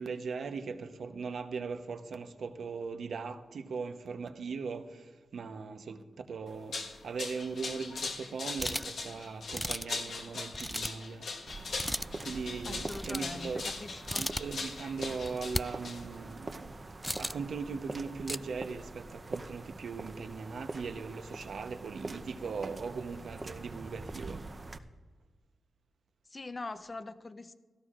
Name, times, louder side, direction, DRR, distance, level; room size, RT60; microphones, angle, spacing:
voice 1, 0.0-11.5 12.2-13.6 14.2-16.8 17.2-24.5, right 5 dB, 75° right, 0.9 m, -39 dB
sound 1, 6.5-16.3, left 3 dB, 75° left, 1.4 m, -40 dB
sound 2, 8.6-9.0 9.5-10.0 10.5-11.0 11.7-12.1 12.8-13.3 14.0-14.4 15.2-15.6 17.0-17.5 18.1-18.4, equal, ahead, 0.3 m, -35 dB
sound 3, 11.5-24.8, right 2 dB, 40° right, 0.8 m, -44 dB
voice 2, 12.7-14.3 26.3-27.5, left 2 dB, 35° left, 0.7 m, -43 dB
17.0 x 14.0 x 2.5 m
cardioid pair, 55°, 0 cm